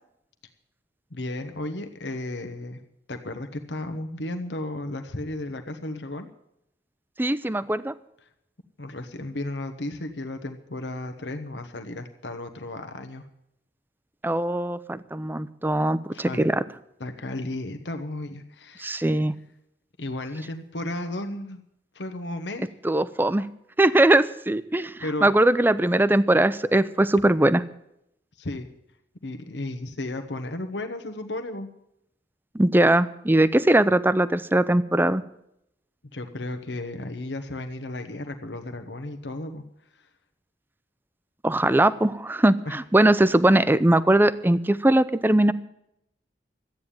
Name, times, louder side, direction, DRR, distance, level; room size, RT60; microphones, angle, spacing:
voice 1, 1.1-2.8 3.1-6.3 8.8-13.2 16.1-16.4 17.0-19.2 20.0-21.6 21.9-22.7 25.0-25.4 28.4-28.7 29.2-31.7 36.1-39.6 42.6-42.7, left 2 dB, 85° left, 7 dB, 1.2 m, -34 dB
voice 2, 7.2-7.9 14.2-16.6 18.8-19.3 22.8-23.5 23.8-27.6 32.5-35.2 41.4-45.5, right 1 dB, 10° right, 15 dB, 0.5 m, -20 dB
13.0 x 9.3 x 8.6 m, 0.78 s
head